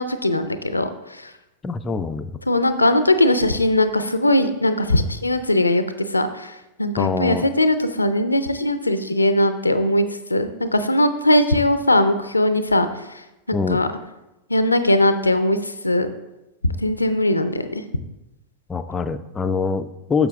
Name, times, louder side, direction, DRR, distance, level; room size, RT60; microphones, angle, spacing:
voice 1, 0.0-1.3 2.5-5.8 6.1-12.9 13.5-13.9 14.5-16.1 16.8-17.8, left 1 dB, 80° left, 11 dB, 0.4 m, -20 dB
voice 2, 1.6-2.3 7.0-7.4 13.5-13.8 18.7-20.3, left 4 dB, 15° left, 9 dB, 0.3 m, -24 dB
6.9 x 6.6 x 3.5 m, 0.98 s
figure-of-eight pair, 90°, 0 cm